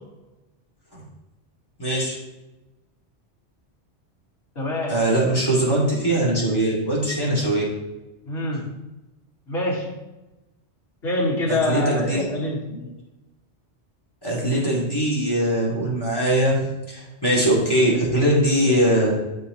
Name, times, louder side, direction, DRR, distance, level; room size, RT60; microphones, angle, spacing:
voice 1, 1.8-2.1 4.9-7.6 11.5-12.2 12.7-12.9 14.2-16.6 16.9-19.1, right 1 dB, 20° left, -5 dB, 3.1 m, -21 dB
voice 2, 4.5-5.0 8.2-8.8 9.5-10.0 11.0-12.7, left 1 dB, 60° left, -6 dB, 2.6 m, -25 dB
12.5 x 5.3 x 3.3 m, 1.0 s
omnidirectional pair, 1.2 m